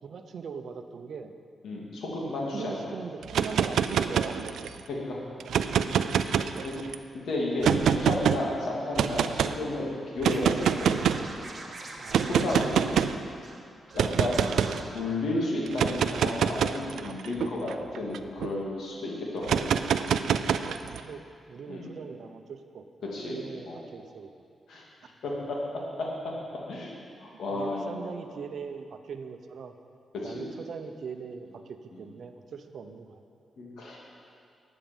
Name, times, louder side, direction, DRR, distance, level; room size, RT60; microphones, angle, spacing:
voice 1, 0.0-1.3 2.5-4.4 12.0-12.3 20.6-22.8 23.3-24.3 27.5-29.7 30.2-33.2, right 6 dB, 65° right, 8 dB, 0.8 m, -40 dB
voice 2, 1.6-2.9 4.9-5.2 5.9-6.0 6.6-6.7 7.1-11.0 12.3-13.0 13.9-14.4 14.7-19.7 21.7-22.0 23.0-23.8 24.7-25.6 26.0-26.3 26.7-27.9 30.2-30.5 31.9-32.0 33.6-34.0, left 2 dB, 75° left, -3 dB, 2.8 m, -32 dB
sound 1, 3.2-4.8 5.4-6.9 7.6-8.4 9.0-9.5 10.2-11.3 12.1-13.2 14.0-14.8 15.7-18.5 19.4-21.0, right 8 dB, 85° right, 0.4 m, -26 dB
Scratching (performance technique), 10.3-13.6 13.9-14.0 14.3-14.8, right 2 dB, 35° right, 1.7 m, -43 dB
12.0 x 9.2 x 5.5 m, 2.3 s
cardioid pair, 85°, 0 cm